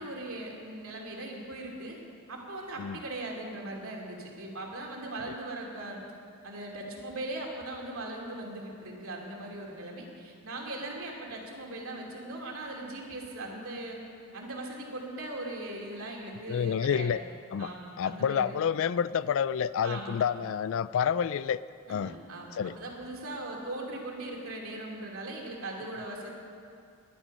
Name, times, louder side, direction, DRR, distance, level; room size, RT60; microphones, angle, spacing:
voice 1, 0.0-2.0 2.3-6.0 6.4-14.0 14.3-17.2 17.6-18.6 19.8-20.2 21.9-26.3, right 2 dB, 70° right, -1 dB, 2.7 m, -39 dB
voice 2, 16.5-17.2 17.5-21.6 21.9-22.2 22.6-22.8, left 7 dB, 60° left, 16 dB, 0.3 m, -29 dB
21.0 x 10.5 x 5.4 m, 2.4 s
head